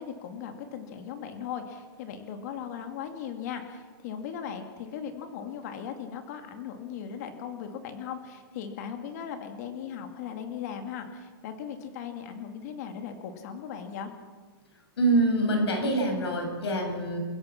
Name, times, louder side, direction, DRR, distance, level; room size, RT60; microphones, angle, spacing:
voice 1, 0.0-14.1, left 8 dB, 40° left, 5 dB, 2.5 m, -38 dB
voice 2, 15.0-17.2, right 2 dB, 90° left, 3 dB, 6.8 m, -25 dB
28.5 x 16.5 x 6.0 m, 1.5 s
supercardioid pair, 170°, 13 cm